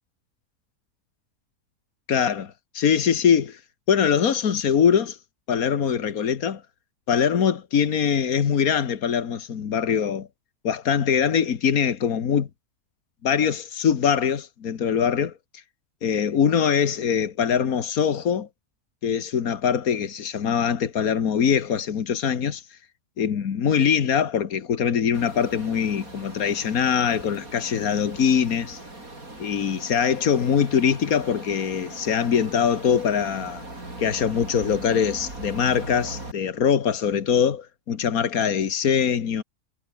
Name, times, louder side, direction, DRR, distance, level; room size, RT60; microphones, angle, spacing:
voice 1, 2.1-3.6 3.9-5.2 5.5-6.6 7.1-10.3 10.6-12.5 13.2-15.3 16.0-18.5 19.0-22.6 23.2-28.8 29.4-33.6 34.0-39.4, left 7 dB, 85° left, 1.9 m, -23 dB
sound 1, 25.1-36.3, right 2 dB, 80° right, 7.2 m, -40 dB
omnidirectional pair, 1.5 m